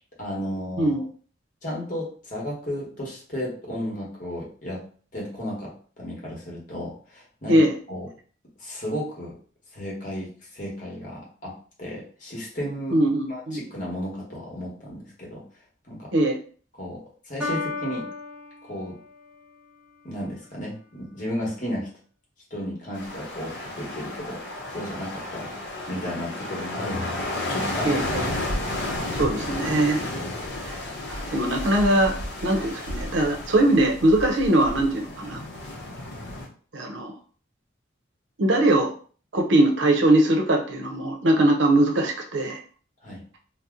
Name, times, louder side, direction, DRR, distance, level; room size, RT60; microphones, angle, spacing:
voice 1, 0.2-1.0 1.6-4.8 5.1-8.1 8.6-9.3 9.7-13.0 13.3-15.4 15.9-16.1 16.7-18.1 18.6-19.0 20.0-21.9 22.5-24.4 24.7-25.5 25.9-28.0 30.1-30.3 43.0-43.2, equal, 40° left, -4 dB, 1.1 m, -34 dB
voice 2, 12.9-13.6 16.1-16.4 27.8-28.3 29.2-30.0 30.6-30.7 31.3-32.1 32.4-35.4 36.7-37.1 38.4-38.9 39.3-42.6, right 1 dB, 70° right, 2 dB, 0.6 m, -21 dB
Piano, 17.4-19.4, left 3 dB, 5° right, 0.7 m, -33 dB
sound 1, 22.9-36.5, left 1 dB, 60° left, 0.7 m, -32 dB
2.8 x 2.0 x 3.6 m, 0.43 s
head